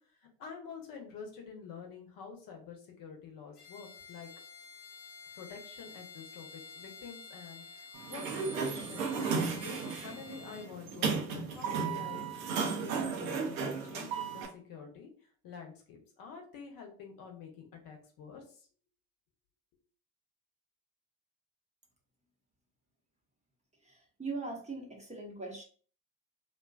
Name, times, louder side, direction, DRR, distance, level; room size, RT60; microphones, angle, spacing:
voice 1, 0.4-4.3 5.3-8.3 8.6-18.7, left 6 dB, 50° left, 2 dB, 0.8 m, -48 dB
Bowed string instrument, 3.6-10.7, left 5 dB, 85° left, 0.5 m, -51 dB
Sliding door, 7.9-14.5, right 5 dB, 70° right, 0.6 m, -34 dB
voice 2, 23.8-25.6, right 3 dB, 15° right, -1 dB, 0.7 m, -40 dB
2.5 x 2.2 x 2.3 m, 0.43 s
hypercardioid pair, 55°, 42 cm